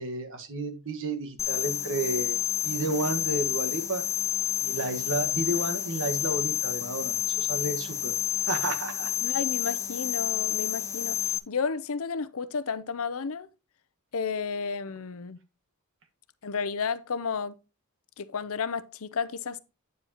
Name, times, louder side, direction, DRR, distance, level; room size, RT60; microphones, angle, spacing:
voice 1, 0.0-2.4 2.6-4.0 4.6-8.1 8.5-9.1, right 2 dB, 60° right, 1.5 m, -31 dB
sound 1, 1.4-11.4, left 10 dB, 15° left, 0.7 m, -29 dB
voice 2, 9.2-13.5 14.1-15.4 16.4-17.6 18.2-19.6, left 5 dB, 65° left, 0.6 m, -32 dB
9.3 x 7.3 x 2.9 m
head